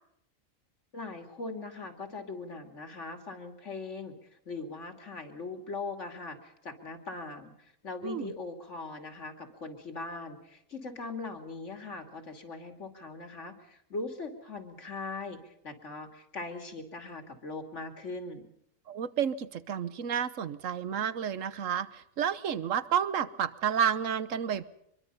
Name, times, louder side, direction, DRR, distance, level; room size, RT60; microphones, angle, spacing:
voice 1, 0.9-4.2 4.5-18.5, left 3 dB, 60° left, 6 dB, 2.9 m, -40 dB
voice 2, 18.9-24.6, right 8 dB, 70° right, 15 dB, 1.4 m, -30 dB
24.5 x 22.5 x 5.5 m, 0.74 s
omnidirectional pair, 1.4 m